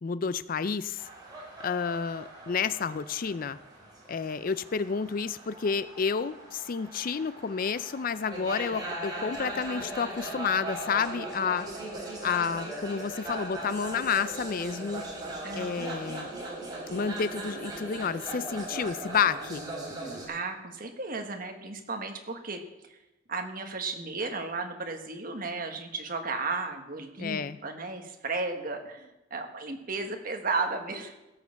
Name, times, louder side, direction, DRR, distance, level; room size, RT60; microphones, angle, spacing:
voice 1, 0.0-1.1 1.6-3.6 4.1-11.7 12.2-15.1 15.5-16.3 16.9-19.6 27.2-27.6, left 6 dB, 45° left, 15 dB, 0.4 m, -30 dB
sound 1, 1.0-20.3, right 1 dB, 20° right, 3.9 m, -39 dB
voice 2, 15.4-16.1 20.3-23.0 23.3-31.1, right 3 dB, 45° right, 4 dB, 1.6 m, -34 dB
16.5 x 6.5 x 7.0 m, 0.99 s
head